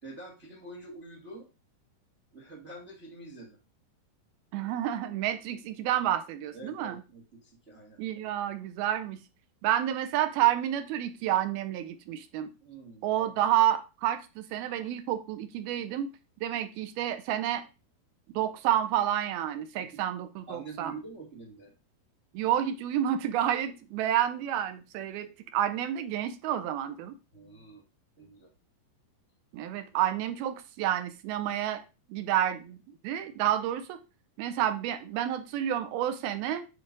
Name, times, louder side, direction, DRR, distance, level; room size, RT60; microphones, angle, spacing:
voice 1, 0.0-1.5 2.3-3.6 6.5-8.0 12.6-13.1 19.9-20.0 20.5-21.7 27.3-27.8 28.2-28.5, right 2 dB, 50° right, 1 dB, 0.8 m, -46 dB
voice 2, 4.5-7.0 8.0-9.2 9.6-12.5 13.0-16.1 16.4-17.6 18.3-20.9 22.3-27.1 29.5-31.8 32.1-32.8 33.0-34.0 34.4-36.7, right 11 dB, 75° right, 9 dB, 2.3 m, -29 dB
9.8 x 4.0 x 5.1 m, 0.30 s
omnidirectional pair, 5.0 m